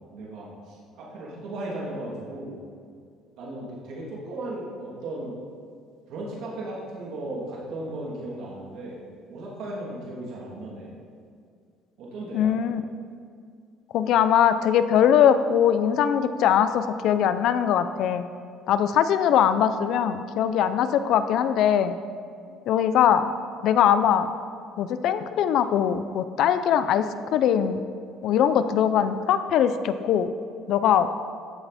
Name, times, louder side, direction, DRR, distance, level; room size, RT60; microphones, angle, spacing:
voice 1, 0.1-2.6 3.4-5.4 6.1-9.0 9.3-10.9 12.0-12.6, right 1 dB, 65° right, -4 dB, 2.8 m, -36 dB
voice 2, 12.3-12.8 13.9-18.2 18.7-21.9 22.7-23.3 23.6-24.3 24.8-27.8 28.2-30.3 30.7-31.1, left 9 dB, 60° left, 11 dB, 0.5 m, -21 dB
14.0 x 7.9 x 4.2 m, 2.2 s
cardioid pair, 135°, 0 cm